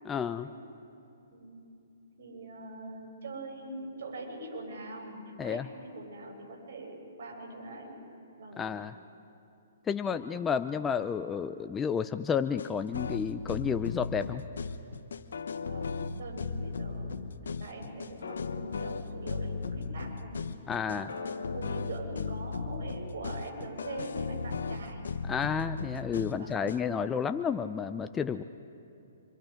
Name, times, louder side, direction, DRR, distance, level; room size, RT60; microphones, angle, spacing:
voice 1, 0.1-0.5 5.4-5.7 8.6-8.9 9.9-14.4 20.7-21.1 25.2-28.4, left 7 dB, 15° left, 9 dB, 0.5 m, -31 dB
voice 2, 2.2-7.9 8.4-8.6 10.0-10.2 15.6-17.2 17.6-20.4 20.9-25.1 26.3-26.6 27.0-27.1, right 2 dB, 65° right, 0 dB, 7.4 m, -43 dB
sound 1, 12.6-26.8, left 4 dB, 80° left, 1.1 m, -36 dB
26.5 x 26.0 x 5.1 m, 2.8 s
hypercardioid pair, 150°, 0 cm